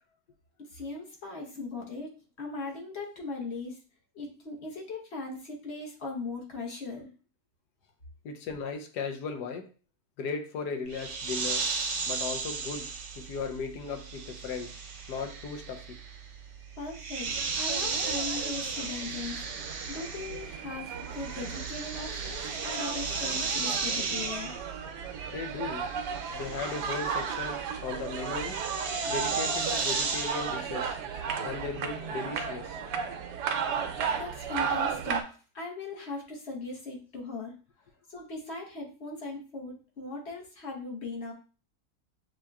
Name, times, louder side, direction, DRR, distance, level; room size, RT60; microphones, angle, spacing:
voice 1, 0.7-3.8 4.1-7.1 16.8-19.4 19.9-24.5 34.2-35.2 35.5-37.5 38.1-41.3, left 3 dB, 45° left, 0 dB, 1.2 m, -39 dB
voice 2, 8.2-9.7 10.2-11.7 12.1-14.7 15.1-16.0 25.3-25.9 26.3-28.6 29.1-31.0 31.4-32.8, left 5 dB, 85° left, 5 dB, 1.4 m, -37 dB
sound 1, 10.9-20.6 20.9-30.6, right 4 dB, 60° right, 0.9 m, -35 dB
sound 2, 17.2-35.2, right 6 dB, 85° right, 1.3 m, -35 dB
7.2 x 2.9 x 2.3 m, 0.37 s
omnidirectional pair, 1.7 m